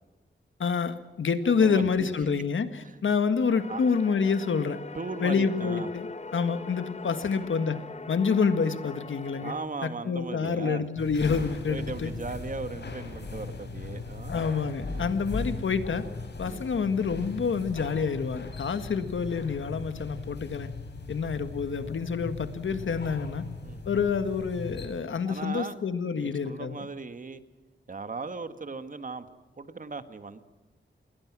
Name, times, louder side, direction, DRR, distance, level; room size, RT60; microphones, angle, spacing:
voice 1, 0.6-4.8 5.2-7.8 8.1-9.5 9.8-12.1 14.3-16.1 16.4-20.7 21.1-23.5 23.9-26.9, left 5 dB, 80° left, 10 dB, 1.8 m, -27 dB
voice 2, 1.4-2.3 2.8-3.0 3.7-3.8 4.9-5.9 9.4-10.9 11.7-14.4 14.9-15.2 16.4-16.6 21.1-21.2 23.6-23.8 25.2-25.8 26.1-27.4 27.9-29.3 29.6-30.4, right 4 dB, 40° right, 10 dB, 1.6 m, -38 dB
sound 1, 3.5-9.7, left 3 dB, 35° left, 1.1 m, -42 dB
sound 2, 11.0-24.9, left 3 dB, 60° left, 5.1 m, -38 dB
27.5 x 21.0 x 6.2 m, 1.2 s
wide cardioid pair, 125°, 20 cm